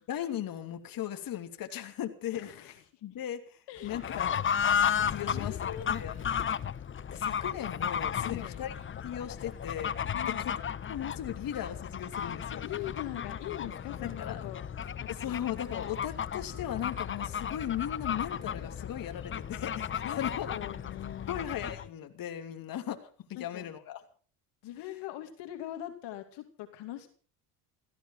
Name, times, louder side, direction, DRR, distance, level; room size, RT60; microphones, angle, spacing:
voice 1, 0.0-2.7 3.0-4.4 4.9-5.6 5.9-6.5 7.1-8.7 9.0-9.9 10.4-10.5 10.9-12.6 14.2-14.4 15.1-20.5 21.3-24.0, left 10 dB, 50° left, 6 dB, 2.8 m, -37 dB
voice 2, 2.3-3.0 3.7-4.0 5.2-5.9 8.1-8.6 10.1-10.5 12.6-15.4 20.0-20.2 20.5-21.5 23.4-23.7 24.6-27.1, left 13 dB, 65° left, 7 dB, 2.7 m, -42 dB
Fowl / Bird, 3.8-21.9, left 8 dB, 25° left, 0.9 m, -34 dB
16.0 x 15.5 x 5.7 m, 0.43 s
supercardioid pair, 95°, 45 cm